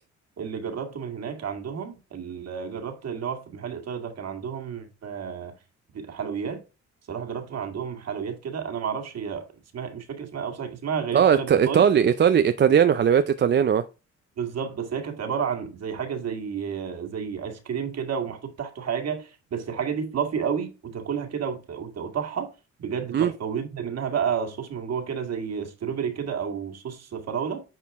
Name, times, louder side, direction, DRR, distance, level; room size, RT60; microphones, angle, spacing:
voice 1, 0.4-5.5 5.9-6.6 7.1-9.4 9.7-11.9 14.4-22.5 22.8-27.6, right 7 dB, 55° right, 1.9 m, -31 dB
voice 2, 11.1-13.8 23.1-23.3, right 8 dB, 35° right, 0.5 m, -19 dB
9.6 x 4.4 x 3.6 m
cardioid pair, 90°, 30 cm